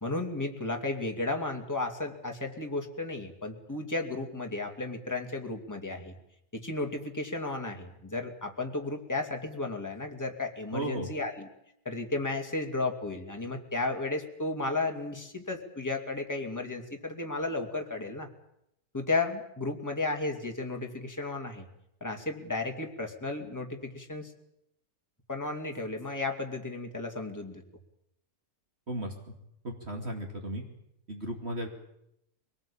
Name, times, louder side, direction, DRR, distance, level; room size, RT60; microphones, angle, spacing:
voice 1, 0.0-6.2 6.5-11.5 11.8-18.3 18.9-21.7 22.0-24.3 25.3-27.6, left 2 dB, 10° left, 3 dB, 2.5 m, -34 dB
voice 2, 10.7-11.1 28.9-29.1 29.6-30.6 31.1-31.7, right 1 dB, 40° right, 2 dB, 2.9 m, -35 dB
24.5 x 19.0 x 8.7 m, 0.79 s
omnidirectional pair, 1.7 m